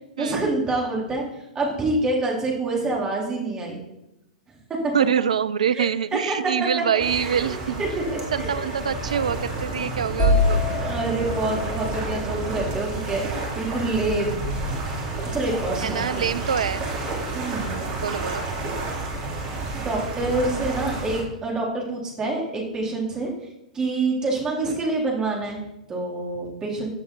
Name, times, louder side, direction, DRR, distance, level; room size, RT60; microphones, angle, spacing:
voice 1, 0.2-1.2 1.5-3.8 4.7-4.9 5.7-8.7 10.7-14.4 15.3-16.3 17.3-17.8 19.8-23.3 23.7-26.9, right 2 dB, 20° right, -2 dB, 4.3 m, -27 dB
voice 2, 4.9-7.8 8.3-10.6 15.8-16.8 18.0-18.4 24.7-24.8, right 8 dB, 65° right, 16 dB, 0.6 m, -25 dB
sound 1, 7.0-21.2, right 2 dB, 35° right, 3.6 m, -30 dB
sound 2, 7.9-19.2, left 3 dB, 50° left, 5.5 m, -44 dB
sound 3, 10.2-14.0, left 1 dB, 20° left, 5.1 m, -26 dB
15.5 x 8.5 x 4.5 m, 0.88 s
figure-of-eight pair, 105°, 4 cm